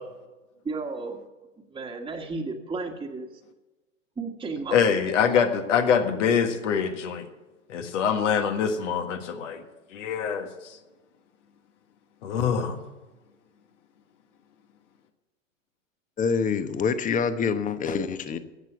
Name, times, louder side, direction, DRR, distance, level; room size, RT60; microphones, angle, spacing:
voice 1, 0.6-1.2 1.7-3.3 4.2-4.8 5.1-5.2, right 3 dB, 10° right, 0 dB, 1.6 m, -33 dB
voice 2, 4.7-7.3 7.7-9.6 9.9-10.8 12.2-12.8, left 7 dB, 65° left, 6 dB, 1.7 m, -24 dB
voice 3, 16.2-18.4, left 5 dB, 20° left, 11 dB, 1.0 m, -26 dB
16.5 x 6.1 x 8.7 m, 1.1 s
hypercardioid pair, 105°, 39 cm